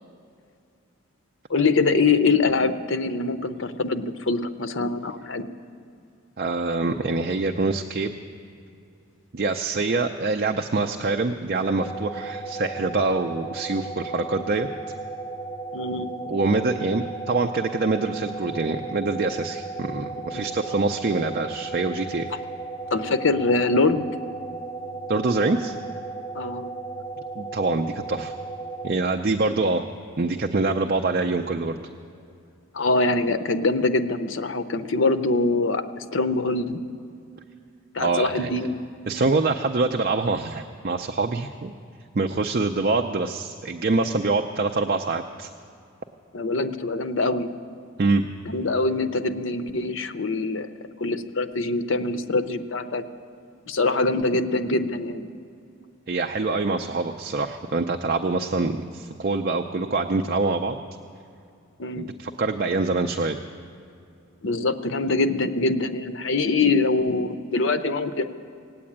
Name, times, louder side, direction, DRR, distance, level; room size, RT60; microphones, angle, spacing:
voice 1, 1.5-5.4 15.7-16.2 20.3-20.4 22.9-24.0 26.3-26.7 32.7-36.8 37.9-38.8 46.3-47.5 48.5-50.7 51.0-53.0 53.7-55.3 61.8-62.1 64.4-68.3, left 3 dB, 60° left, 10 dB, 0.7 m, -24 dB
voice 2, 6.4-8.1 9.3-14.7 16.2-22.3 25.1-25.8 27.4-28.3 28.8-29.8 30.2-31.8 38.0-38.5 39.1-41.7 42.1-45.5 48.0-48.3 56.1-60.8 62.0-63.4, right 3 dB, 45° right, 4 dB, 0.5 m, -25 dB
sound 1, 11.8-28.9, right 3 dB, 10° left, 0.9 m, -35 dB
18.5 x 8.6 x 8.6 m, 2.5 s
head